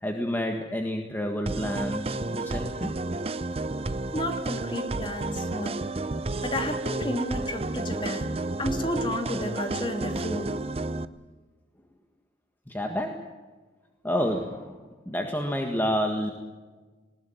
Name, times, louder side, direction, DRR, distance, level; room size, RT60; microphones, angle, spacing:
voice 1, 0.0-2.9 12.7-13.3 14.0-16.3, equal, 10° left, 3 dB, 1.7 m, -29 dB
sound 1, 1.5-11.0, right 2 dB, 35° right, 0.7 m, -31 dB
voice 2, 4.1-5.8 6.4-8.3 8.6-10.5, left 1 dB, 30° left, 4 dB, 2.9 m, -31 dB
20.0 x 20.0 x 9.2 m, 1.3 s
head